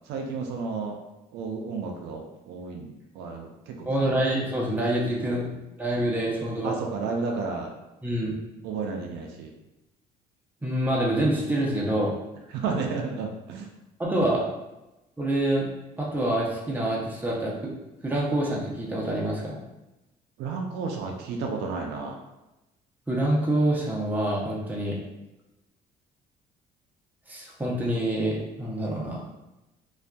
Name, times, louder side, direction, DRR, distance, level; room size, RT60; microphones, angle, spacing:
voice 1, 0.1-1.0 1.3-4.2 6.6-7.7 8.6-9.5 12.5-13.7 14.2-14.3 20.4-22.2, right 4 dB, 80° right, 1 dB, 0.4 m, -32 dB
voice 2, 3.9-5.5 5.8-6.8 8.0-8.3 10.6-12.2 14.0-14.4 15.2-15.7 16.0-17.7 18.0-19.6 23.1-25.0 27.3-29.2, right 1 dB, 10° right, -4 dB, 0.6 m, -26 dB
2.5 x 2.3 x 2.2 m, 0.97 s
cardioid pair, 110°, 17 cm